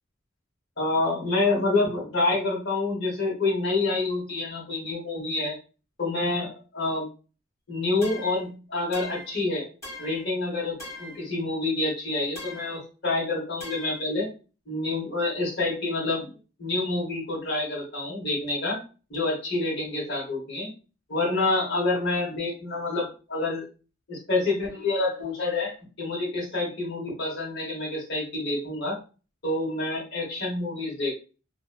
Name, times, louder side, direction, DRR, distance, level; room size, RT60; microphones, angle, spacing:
voice 1, 0.8-5.5 6.0-7.1 7.7-9.6 10.0-14.3 14.7-16.3 16.6-18.8 19.1-20.7 21.1-23.6 24.1-29.0 29.4-31.1, left 2 dB, 55° left, -3 dB, 1.1 m, -27 dB
sound 1, 8.0-8.5 8.9-9.4 9.8-10.3 10.8-11.2 12.4-12.8 13.6-14.0, left 1 dB, 15° left, 1.3 m, -40 dB
2.8 x 2.0 x 2.3 m, 0.35 s
head